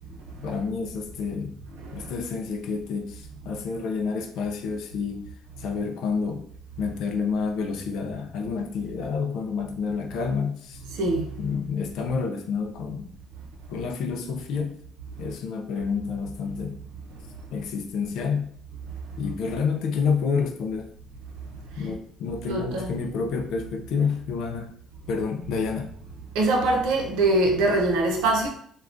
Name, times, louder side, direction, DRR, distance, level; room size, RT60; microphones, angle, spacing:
voice 1, 0.4-1.6 1.9-5.3 5.6-6.5 6.8-10.8 11.4-13.1 13.7-14.8 15.2-16.8 17.5-18.5 19.2-20.9 21.8-24.7 25.1-25.9, left 5 dB, 60° left, 0.3 m, -29 dB
voice 2, 22.5-22.9 26.3-28.5, right 2 dB, 85° right, 0.6 m, -22 dB
3.4 x 2.2 x 2.5 m
cardioid pair, 175°, 0 cm